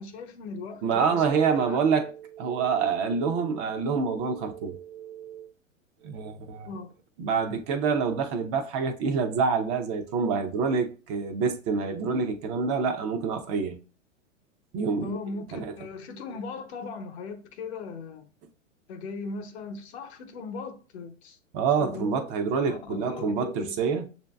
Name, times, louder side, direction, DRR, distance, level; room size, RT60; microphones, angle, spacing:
voice 1, 0.0-1.8 6.6-6.9 15.0-18.3 18.9-21.4 21.8-22.2 22.7-23.7, left 4 dB, 55° left, 0.9 m, -38 dB
voice 2, 0.8-5.5 6.0-6.7 7.2-13.8 14.7-15.2 15.5-15.7 21.5-24.1, right 5 dB, 30° right, 0.5 m, -27 dB
6.6 x 2.7 x 2.2 m
figure-of-eight pair, 105°, 38 cm